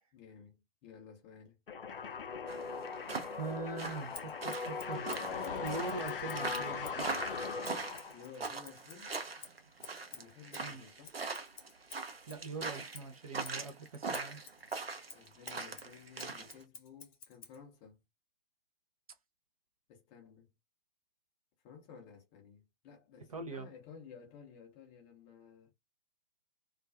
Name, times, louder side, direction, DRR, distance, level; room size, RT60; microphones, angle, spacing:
voice 1, 0.1-1.6 8.1-9.2 10.1-11.2 15.1-18.0 19.9-20.5 21.6-25.7, left 6 dB, 15° left, 0.5 m, -55 dB
sound 1, 1.7-8.4, left 5 dB, 65° left, 0.5 m, -39 dB
sound 2, 2.5-16.5, right 4 dB, 90° right, 0.6 m, -41 dB
voice 2, 3.3-7.4 10.6-10.8 12.3-14.4 23.3-23.7, right 3 dB, 40° right, 0.4 m, -43 dB
Scissors, 4.1-7.1 7.6-12.5 12.9-17.6, left 5 dB, 35° left, 0.9 m, -53 dB
2.3 x 2.3 x 2.4 m
figure-of-eight pair, 125°, 29 cm